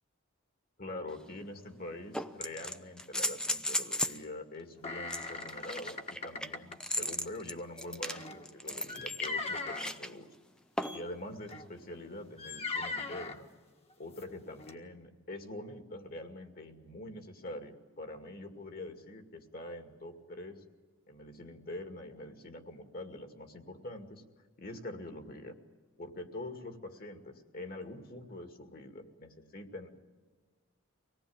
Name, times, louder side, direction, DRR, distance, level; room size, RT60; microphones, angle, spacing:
voice 1, 0.8-10.3 10.9-13.5 14.0-20.6 21.1-24.2 24.6-25.6 26.0-29.9, left 1 dB, 45° left, 5 dB, 2.2 m, -44 dB
sound 1, 1.1-1.2 2.1-4.2 5.1-10.1 10.8-11.1 12.8-12.9, left 1 dB, 5° left, 0.7 m, -36 dB
sound 2, 4.8-6.8 8.0-9.9 10.8-11.0 11.5-11.7 12.4-13.4 14.2-14.3 14.6-14.7, left 3 dB, 30° left, 1.6 m, -39 dB
25.0 x 18.5 x 8.8 m, 1.4 s
head